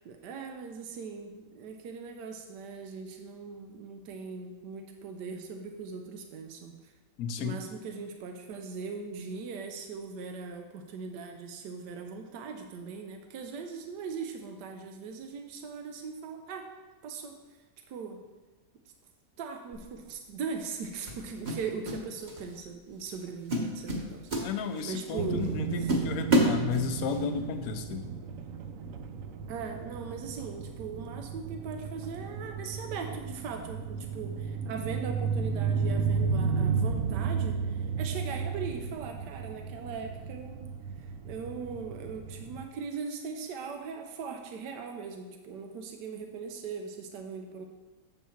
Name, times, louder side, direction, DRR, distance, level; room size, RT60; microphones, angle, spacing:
voice 1, 0.0-6.9 7.4-16.7 17.0-17.4 17.9-18.2 19.4-25.9 29.5-40.7 41.0-47.7, right 5 dB, 90° right, 4 dB, 1.3 m, -40 dB
voice 2, 7.2-7.6 24.4-28.1, left 6 dB, 65° left, 7 dB, 1.1 m, -33 dB
sound 1, 19.7-20.0 21.1-22.0 22.3-22.6 23.0-23.2 23.5-25.0 25.4-25.5 25.9-27.2, right 1 dB, 30° right, 1.0 m, -28 dB
sound 2, 25.1-42.6, right 5 dB, 65° right, 0.9 m, -33 dB
7.4 x 7.0 x 4.4 m, 1.2 s
omnidirectional pair, 1.8 m